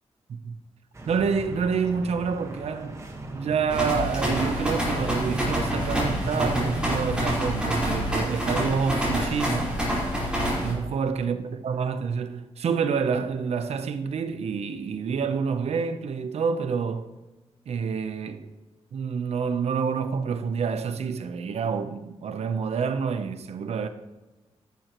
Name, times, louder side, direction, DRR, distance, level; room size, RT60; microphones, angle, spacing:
sound 1, 0.9-7.6, right 1 dB, 25° right, 1.5 m, -36 dB
voice 1, 1.1-3.0 3.3-9.7 10.6-17.1 17.7-18.5 18.9-23.9, right 6 dB, 70° right, 0.8 m, -28 dB
sound 2, 3.7-10.7, equal, 10° right, 4.6 m, -27 dB
13.5 x 11.5 x 3.1 m
wide cardioid pair, 160°, 11 cm